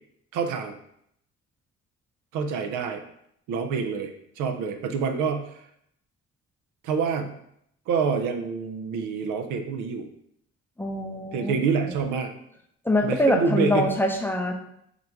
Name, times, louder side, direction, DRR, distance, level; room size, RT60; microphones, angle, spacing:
voice 1, 0.3-0.8 2.3-3.0 3.5-5.5 6.8-7.3 7.9-10.1 11.3-12.3 13.0-13.9, right 5 dB, 85° right, 6 dB, 0.6 m, -27 dB
voice 2, 10.8-11.5 12.8-14.5, left 1 dB, 5° left, 2 dB, 0.5 m, -24 dB
3.9 x 2.3 x 4.5 m, 0.73 s
cardioid pair, 90°, 30 cm